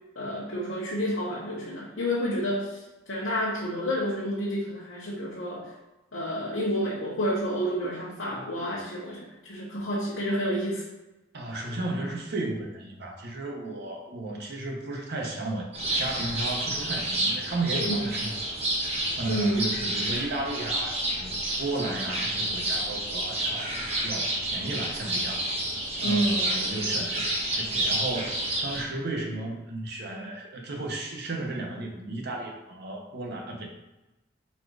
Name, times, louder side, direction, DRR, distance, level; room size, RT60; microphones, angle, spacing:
voice 1, 0.1-5.7 6.1-10.8 17.7-18.0 19.3-19.7 26.0-26.5, equal, 75° left, -5 dB, 0.9 m, -29 dB
voice 2, 11.3-18.3 19.2-25.5 26.0-33.7, right 2 dB, 55° right, 1 dB, 0.9 m, -34 dB
sound 1, 15.7-28.8, right 1 dB, 35° right, 1.1 m, -29 dB
4.1 x 2.5 x 4.7 m, 1.0 s
head